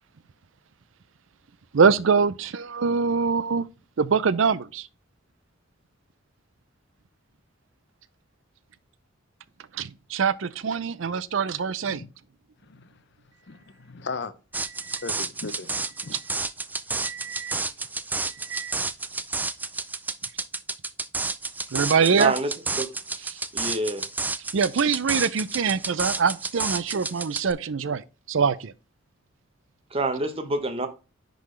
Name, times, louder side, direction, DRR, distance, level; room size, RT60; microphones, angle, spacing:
voice 1, 1.7-3.7 4.0-4.9 9.7-12.0 14.8-15.0 16.1-16.2 17.0-17.5 18.4-18.7 21.7-22.3 23.3-23.4 24.5-28.7, right 5 dB, 70° right, 0.5 m, -24 dB
voice 2, 13.5-14.3 15.0-15.7 16.0-16.1, left 4 dB, 60° left, 0.7 m, -36 dB
sound 1, 14.5-27.5, right 3 dB, 10° right, 0.3 m, -31 dB
voice 3, 22.2-22.5 22.8-22.9 23.5-24.1 29.9-30.9, right 2 dB, 30° right, 0.9 m, -26 dB
10.5 x 3.9 x 3.2 m
head